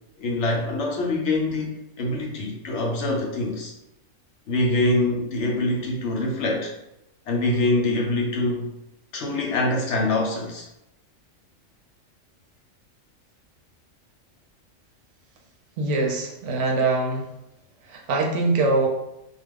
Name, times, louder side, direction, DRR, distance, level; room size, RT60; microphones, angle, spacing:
voice 1, 0.2-3.7 4.5-6.7 7.3-8.7 9.1-10.7, left 2 dB, 70° left, -1 dB, 0.8 m, -24 dB
voice 2, 15.8-17.3 17.8-18.9, right 3 dB, 70° right, 1 dB, 0.8 m, -23 dB
2.3 x 2.3 x 3.4 m, 0.87 s
omnidirectional pair, 1.4 m